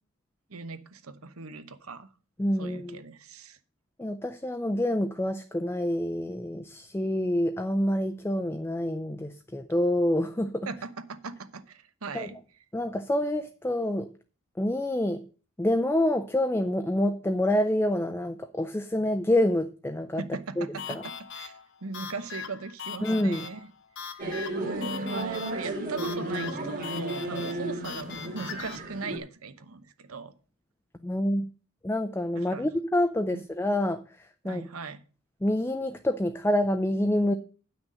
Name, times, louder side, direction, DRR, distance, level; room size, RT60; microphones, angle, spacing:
voice 1, 0.5-2.1 2.6-3.6 10.7-12.4 20.2-21.5 21.8-23.6 24.0-30.3 32.3-32.7 33.3-33.4 34.4-35.0, right 4 dB, 80° right, 12 dB, 1.0 m, -39 dB
voice 2, 2.4-3.0 4.0-10.7 12.1-12.3 12.7-14.1 14.6-15.3 15.6-20.2 20.6-21.0 23.0-23.5 31.0-31.5 31.8-34.6 35.4-37.3, left 1 dB, 10° left, 7 dB, 0.5 m, -27 dB
sound 1, 20.8-28.8, left 7 dB, 60° left, 1.0 m, -41 dB
sound 2, 24.2-29.2, right 2 dB, 40° right, 2.0 m, -33 dB
9.0 x 6.2 x 6.3 m, 0.37 s
head